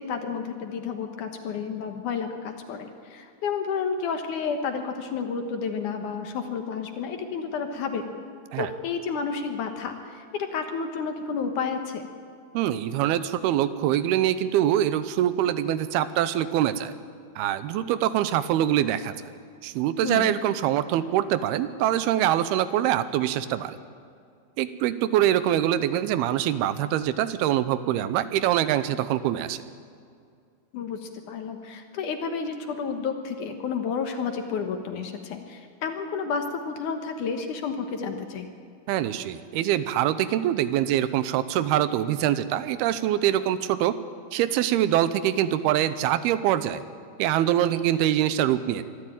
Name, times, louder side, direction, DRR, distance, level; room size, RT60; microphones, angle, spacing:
voice 1, 0.0-8.1 8.6-12.0 20.0-20.4 30.7-38.5, left 5 dB, 65° left, 5 dB, 2.5 m, -31 dB
voice 2, 12.5-16.9 17.4-19.1 19.6-23.8 24.6-29.6 38.9-44.0 44.3-46.8 47.2-48.8, right 12 dB, 90° right, 13 dB, 2.8 m, -24 dB
23.5 x 13.0 x 9.0 m, 2.3 s
omnidirectional pair, 4.4 m